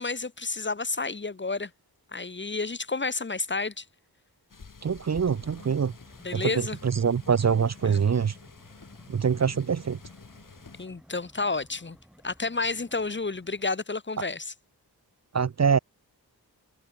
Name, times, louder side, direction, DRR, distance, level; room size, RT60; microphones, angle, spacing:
voice 1, 0.0-1.7 2.1-3.8 6.2-6.8 7.8-8.0 10.8-12.0 12.2-14.5, left 3 dB, 30° left, 0.9 m, -30 dB
sound 1, 4.5-10.9, left 4 dB, 55° left, 2.5 m, -49 dB
voice 2, 4.8-5.9 6.3-8.3 9.1-10.0 15.3-15.8, right 6 dB, 45° right, 0.6 m, -24 dB
sound 2, 5.1-13.7, equal, ahead, 4.1 m, -56 dB
wide cardioid pair, 60°, 39 cm